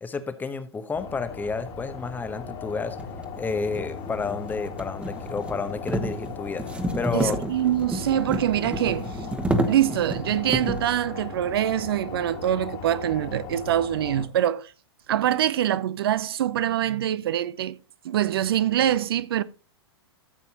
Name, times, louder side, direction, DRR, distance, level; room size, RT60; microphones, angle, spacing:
voice 1, 0.0-3.0 3.4-7.4, left 4 dB, 15° left, 0.9 m, -31 dB
sound 1, 0.9-14.3, left 5 dB, 35° left, 2.1 m, -38 dB
sound 2, 2.1-2.2 2.9-10.9, right 1 dB, 10° right, 1.3 m, -31 dB
voice 2, 7.1-9.2 9.7-14.7 15.1-17.8 18.0-19.4, right 11 dB, 60° right, 0.6 m, -24 dB
13.5 x 7.0 x 2.9 m
hypercardioid pair, 110°, 14 cm